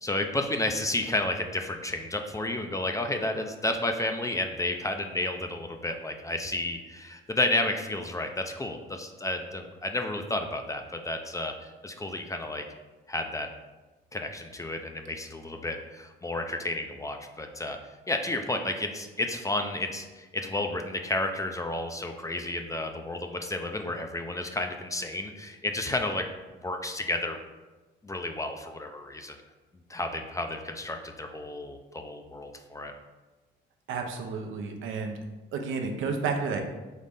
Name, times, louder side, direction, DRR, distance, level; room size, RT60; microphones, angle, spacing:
voice 1, 0.0-11.5 11.8-12.6 13.1-13.5 14.1-17.8 18.1-26.3 26.6-27.4 28.0-29.4 29.9-32.9, left 2 dB, 15° left, 5 dB, 0.4 m, -31 dB
voice 2, 33.9-35.2 35.5-36.6, right 5 dB, 80° right, 4 dB, 0.6 m, -31 dB
4.0 x 3.1 x 3.5 m, 1.2 s
cardioid pair, 90°, 20 cm